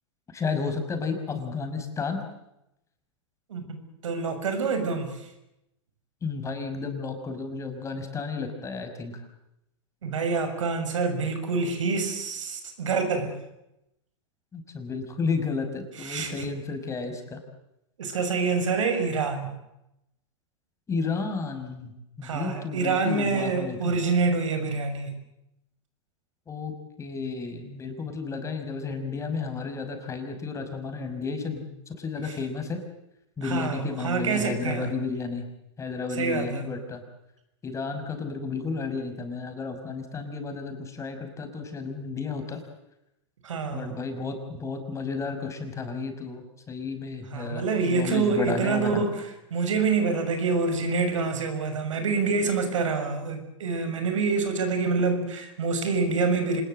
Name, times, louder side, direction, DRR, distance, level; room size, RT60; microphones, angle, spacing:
voice 1, 0.3-2.2 6.2-9.2 14.5-17.4 20.9-23.9 26.5-26.7 27.0-32.8 33.4-35.5 35.8-37.0 37.6-42.6 43.7-49.0, left 4 dB, 20° left, 5 dB, 5.8 m, -32 dB
voice 2, 4.0-5.3 10.0-13.4 16.0-16.5 18.0-19.5 22.2-25.1 32.2-32.4 33.4-34.9 36.1-36.7 43.4-44.0 47.3-49.2 49.5-56.6, right 4 dB, 85° right, 7 dB, 6.5 m, -26 dB
26.5 x 20.5 x 7.8 m, 0.86 s
hypercardioid pair, 125°, 16 cm